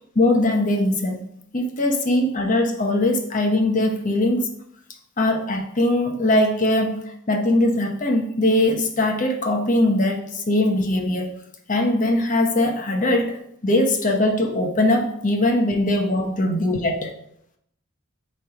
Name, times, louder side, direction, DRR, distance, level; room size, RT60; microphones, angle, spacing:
voice 1, 0.1-1.3 1.5-4.5 5.2-11.3 11.7-17.0, left 1 dB, 40° left, 3 dB, 0.9 m, -21 dB
9.2 x 3.3 x 4.9 m, 0.72 s
head